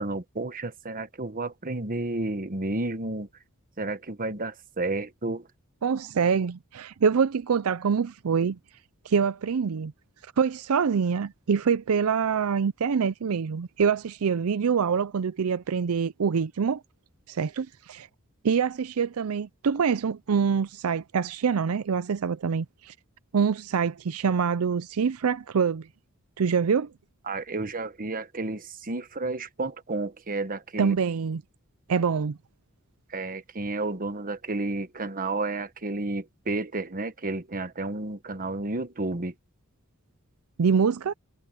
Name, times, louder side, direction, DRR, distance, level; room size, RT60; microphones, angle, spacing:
voice 1, 0.0-3.3 3.8-5.5 27.3-31.0 33.1-39.3, right 2 dB, 40° right, 1.3 m, -31 dB
voice 2, 5.8-8.6 9.1-9.9 10.4-16.8 17.3-18.1 18.4-22.9 23.3-25.9 26.4-26.9 30.8-31.4 31.9-32.4 40.6-41.1, right 6 dB, 85° right, 0.5 m, -25 dB
head